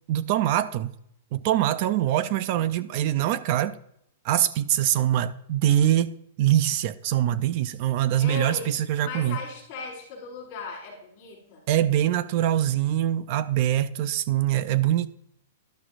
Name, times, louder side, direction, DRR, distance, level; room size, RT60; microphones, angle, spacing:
voice 1, 0.1-0.9 1.3-3.8 4.2-9.4 11.7-15.1, right 12 dB, 30° right, 0.4 m, -23 dB
voice 2, 8.2-8.7 9.0-11.6, left 5 dB, 20° left, 4.7 m, -37 dB
12.0 x 11.5 x 2.5 m
supercardioid pair, 180°, 0 cm